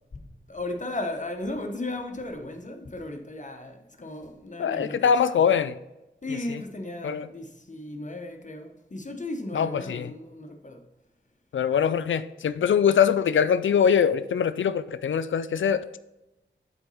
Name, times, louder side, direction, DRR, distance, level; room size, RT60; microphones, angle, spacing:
voice 1, 0.1-5.5 6.2-10.9, left 2 dB, 40° left, 1.0 m, -36 dB
voice 2, 4.6-5.7 6.5-6.6 7.0-7.3 9.5-10.1 11.5-15.9, left 7 dB, 90° left, 0.4 m, -23 dB
7.9 x 3.9 x 5.5 m
wide cardioid pair, 65°, 19 cm